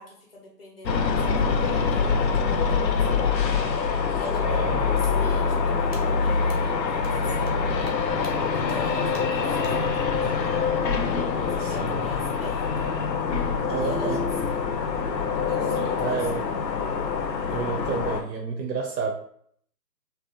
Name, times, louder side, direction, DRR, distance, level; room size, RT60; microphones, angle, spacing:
voice 1, 0.0-3.4 4.1-7.9 8.5-10.5 11.5-13.0 13.8-14.6 15.5-16.3, left 2 dB, 40° left, -1 dB, 0.5 m, -43 dB
sound 1, 0.9-18.2, left 5 dB, 90° left, 0.6 m, -25 dB
voice 2, 4.4-5.1 11.6-12.0 13.7-14.2 15.8-16.5 17.4-19.1, right 5 dB, 90° right, 3 dB, 0.6 m, -30 dB
sound 2, 5.9-6.0 6.5-6.6 7.0-7.1 7.4-7.6 7.9-8.0 8.2-8.3 8.7-8.8 9.1-9.2 9.6-9.7, right 1 dB, 40° right, 0.4 m, -44 dB
2.6 x 2.1 x 2.5 m, 0.64 s
figure-of-eight pair, 160°, 50 cm